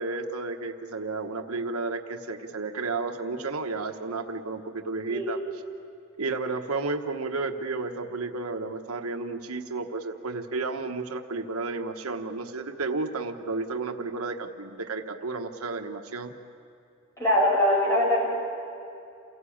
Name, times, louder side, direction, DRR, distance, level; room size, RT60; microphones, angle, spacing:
voice 1, 0.0-5.4 6.2-16.3, right 3 dB, 90° right, 5 dB, 1.2 m, -32 dB
voice 2, 5.1-5.4 17.2-18.3, left 1 dB, 15° left, -3 dB, 5.9 m, -22 dB
28.0 x 16.5 x 8.7 m, 2.5 s
head